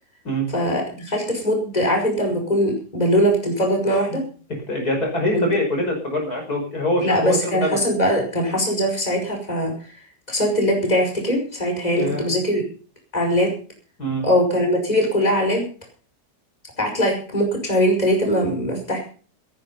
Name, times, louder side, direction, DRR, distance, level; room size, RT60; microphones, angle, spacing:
voice 1, 0.5-4.2 5.3-5.4 7.0-9.7 10.3-12.6 13.1-13.5 14.2-15.6 16.8-19.0, equal, 20° left, 2 dB, 5.5 m, -21 dB
voice 2, 4.5-7.8 11.9-12.3 14.0-14.2, left 1 dB, 60° left, 2 dB, 6.0 m, -24 dB
17.5 x 11.0 x 5.5 m, 0.39 s
omnidirectional pair, 1.8 m